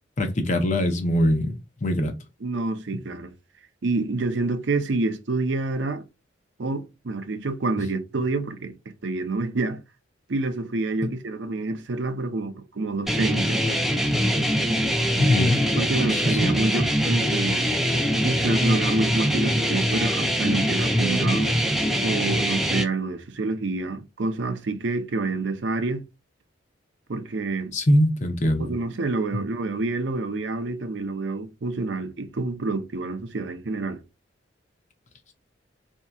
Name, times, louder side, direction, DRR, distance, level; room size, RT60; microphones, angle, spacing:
voice 1, 0.2-1.5 1.8-2.1 15.2-15.6 16.1-16.5 27.7-28.7, left 1 dB, 40° left, 0.6 m, -22 dB
voice 2, 2.4-3.3 3.8-6.0 6.6-9.8 10.3-13.6 15.8-17.8 18.2-21.5 22.0-26.1 27.1-27.8 28.6-34.0, right 3 dB, 65° right, 0.6 m, -28 dB
sound 1, 13.1-22.8, equal, ahead, 0.4 m, -23 dB
4.4 x 2.7 x 2.3 m
head